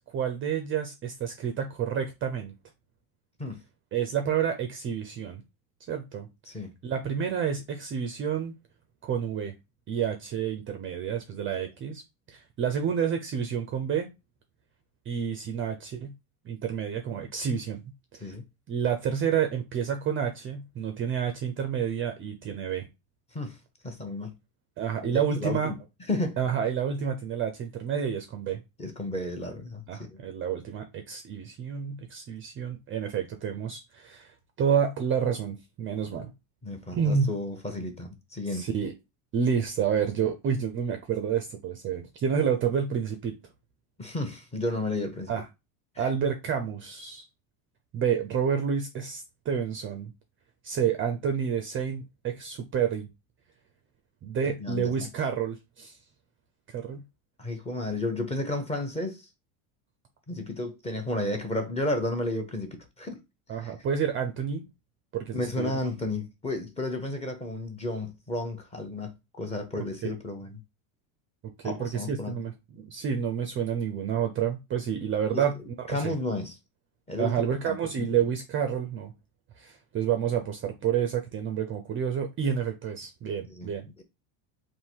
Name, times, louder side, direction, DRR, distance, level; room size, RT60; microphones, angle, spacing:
voice 1, 0.0-2.5 3.9-5.4 5.9-6.3 6.8-8.5 9.0-9.5 9.9-12.0 12.3-14.1 15.1-16.1 16.4-17.8 18.1-18.3 18.7-22.9 24.8-25.7 26.4-28.6 29.9-36.3 36.9-37.3 38.5-38.9 39.3-43.3 45.3-45.4 46.0-47.2 47.9-50.1 50.6-53.1 54.2-56.0 56.7-57.0 63.5-64.6 65.1-65.9 70.0-70.1 71.6-76.1 77.2-79.1 79.6-83.9, right 7 dB, 25° right, 0.5 m, -29 dB
voice 2, 23.8-24.3 25.1-25.7 26.1-26.4 28.8-30.2 36.6-38.7 44.0-45.3 46.0-46.1 54.6-55.1 57.4-59.3 60.3-63.2 63.6-63.7 65.3-70.6 71.6-72.4 75.3-75.4 75.9-76.6 77.1-78.1 83.5-83.7 84.0-84.1, left 2 dB, 15° left, 0.8 m, -32 dB
3.6 x 2.6 x 4.5 m
supercardioid pair, 145°, 47 cm